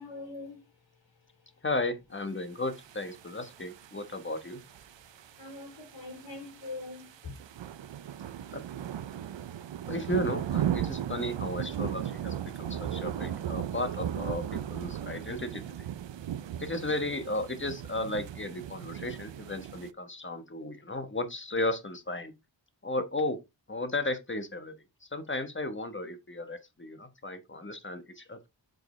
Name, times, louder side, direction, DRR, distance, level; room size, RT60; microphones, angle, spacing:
voice 1, 0.0-1.6 5.0-8.6 12.6-12.7, left 3 dB, 75° left, 3.6 m, -45 dB
voice 2, 1.6-4.6 8.5-8.6 9.9-15.9 16.6-22.3 22.8-23.4 23.7-24.7 25.0-28.5, left 2 dB, 25° left, 1.2 m, -34 dB
sound 1, 2.7-19.9, right 10 dB, 75° right, 0.6 m, -37 dB
7.6 x 5.2 x 3.2 m
wide cardioid pair, 105°, 45 cm